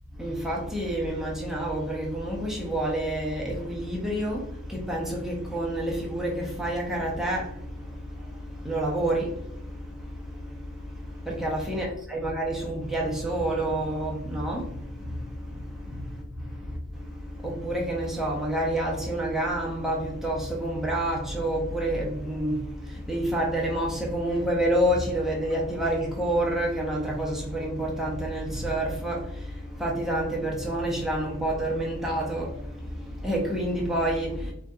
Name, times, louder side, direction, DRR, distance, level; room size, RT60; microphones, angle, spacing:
voice 1, 0.1-34.5, right 1 dB, ahead, 0.6 m, -29 dB
3.8 x 2.8 x 2.2 m
head